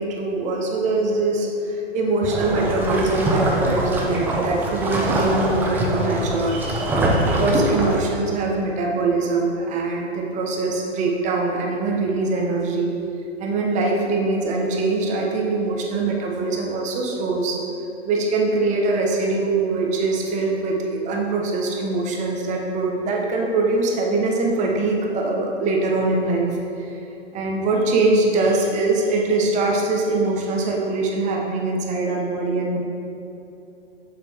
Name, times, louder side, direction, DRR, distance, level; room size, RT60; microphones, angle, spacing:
voice 1, 0.0-12.9 13.4-17.6 18.0-26.5 26.8-27.0 27.3-32.8, right 3 dB, 20° right, 0 dB, 1.0 m, -23 dB
sound 1, 2.2-8.0, right 1 dB, 5° right, 0.4 m, -23 dB
7.4 x 6.9 x 3.5 m, 2.9 s
hypercardioid pair, 130°, 34 cm